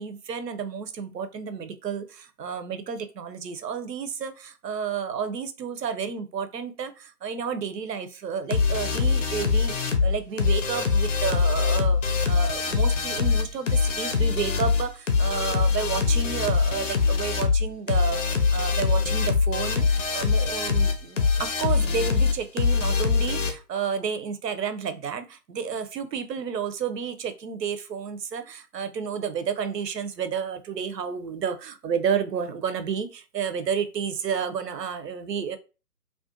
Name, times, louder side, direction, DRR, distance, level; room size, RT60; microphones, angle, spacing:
voice 1, 0.0-35.6, right 7 dB, 75° right, 10 dB, 0.6 m, -31 dB
sound 1, 8.5-23.5, left 5 dB, 50° left, 0.5 m, -23 dB
2.4 x 2.2 x 2.4 m, 0.32 s
figure-of-eight pair, 140°, 49 cm